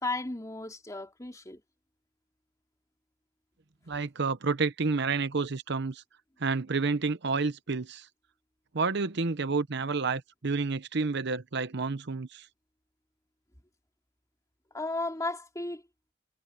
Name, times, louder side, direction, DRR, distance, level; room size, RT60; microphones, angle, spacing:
voice 1, 0.0-1.6 14.7-15.8, left 2 dB, 15° left, 2.8 m, -34 dB
voice 2, 3.9-6.0 6.4-8.1 8.7-12.5, right 4 dB, 60° right, 0.8 m, -30 dB
head